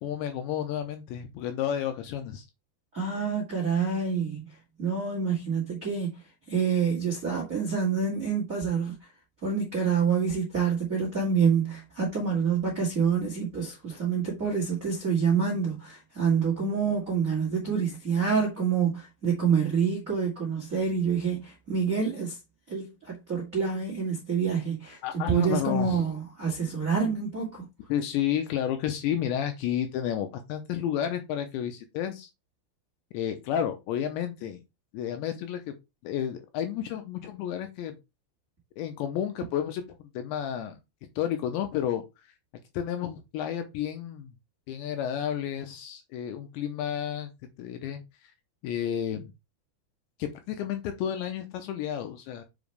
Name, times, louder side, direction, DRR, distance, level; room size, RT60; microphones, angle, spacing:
voice 1, 0.0-2.5 25.0-26.0 27.9-32.3 33.1-34.6 34.9-35.7 36.0-38.0 38.8-40.8 41.2-42.0 42.7-44.3 44.7-47.3 47.6-48.0 48.6-49.3 50.2-52.4, left 10 dB, 80° left, 2.8 m, -31 dB
voice 2, 2.9-6.2 6.5-9.0 9.4-22.4 22.7-27.7, right 6 dB, 85° right, 0.7 m, -27 dB
7.2 x 5.0 x 3.3 m
omnidirectional pair, 5.6 m